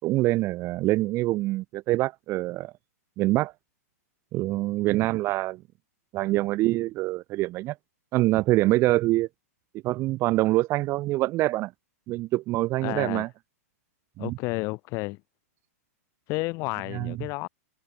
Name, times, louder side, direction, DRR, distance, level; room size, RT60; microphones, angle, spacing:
voice 1, 0.0-2.7 3.2-3.5 4.3-5.6 6.1-7.7 8.1-9.3 9.8-11.7 12.1-13.3 14.2-14.4 16.9-17.3, right 18 dB, 30° right, 3.2 m, -25 dB
voice 2, 12.8-13.2 14.2-15.2 16.3-17.5, left 25 dB, 35° left, 5.1 m, -31 dB
hypercardioid pair, 150°, 9 cm